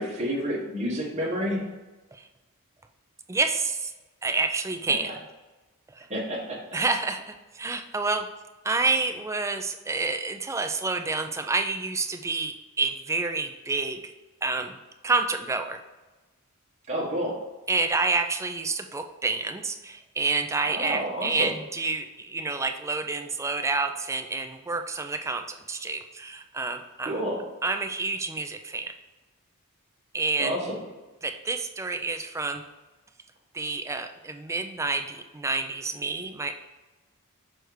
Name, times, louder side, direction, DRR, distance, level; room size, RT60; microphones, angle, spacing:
voice 1, 0.0-1.6 6.1-6.6 16.9-17.3 20.7-21.5 27.0-27.4 30.4-30.8, equal, 30° right, -5 dB, 1.3 m, -29 dB
voice 2, 3.3-3.9 4.2-5.1 6.0-6.1 6.7-8.3 8.6-14.1 14.4-14.8 15.0-15.8 17.7-27.2 27.6-28.9 30.1-30.6 31.2-32.6 33.5-36.5, right 3 dB, 15° right, 6 dB, 0.4 m, -28 dB
6.3 x 3.3 x 4.6 m, 1.2 s
head